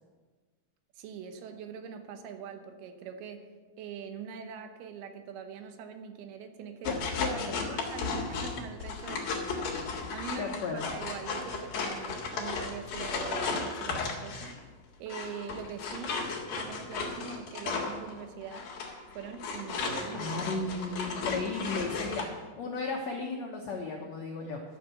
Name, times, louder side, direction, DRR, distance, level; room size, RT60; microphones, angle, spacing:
voice 1, 1.0-3.5 3.8-7.4 7.7-14.6 15.0-16.2 16.5-18.7 19.1-20.3, right 6 dB, 80° right, 6 dB, 2.9 m, -43 dB
voice 2, 6.8-7.8 10.4-10.9 20.1-24.6, left 3 dB, 85° left, 1 dB, 1.5 m, -35 dB
sound 1, 6.8-14.6 15.1-22.3, left 4 dB, 70° left, 3.6 m, -35 dB
13.0 x 6.6 x 7.7 m, 1.4 s
omnidirectional pair, 4.6 m